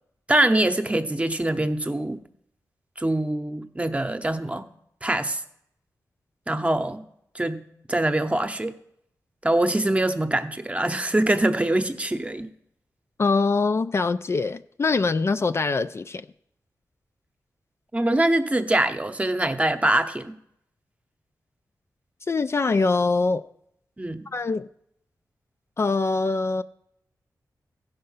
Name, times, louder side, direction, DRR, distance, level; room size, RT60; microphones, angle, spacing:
voice 1, 0.3-2.2 3.0-4.7 5.0-5.4 6.5-7.0 7.3-8.7 9.4-12.5 17.9-20.3 24.0-24.3, right 1 dB, 20° right, 0.8 m, -24 dB
voice 2, 13.2-16.3 22.3-23.4 24.3-24.7 25.8-26.6, left 3 dB, 45° left, 0.4 m, -23 dB
15.0 x 5.4 x 5.6 m
cardioid pair, 70°, 7 cm